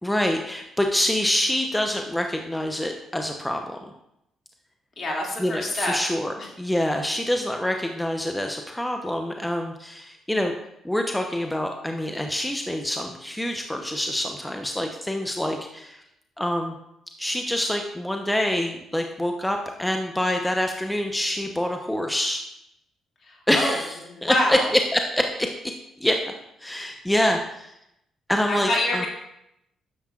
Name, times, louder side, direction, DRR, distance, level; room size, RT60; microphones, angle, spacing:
voice 1, 0.0-3.8 5.4-10.5 10.8-16.0 16.4-16.7 17.2-22.4 23.5-23.9 24.2-25.7 26.0-26.2 26.6-27.7 28.3-29.1, left 1 dB, 10° left, 4 dB, 0.8 m, -26 dB
voice 2, 5.0-6.0 6.4-6.5 23.2-23.7 24.1-24.7 28.5-29.1, left 1 dB, 55° left, -2 dB, 2.4 m, -26 dB
10.5 x 7.0 x 2.5 m, 0.81 s
supercardioid pair, 55°, 0 cm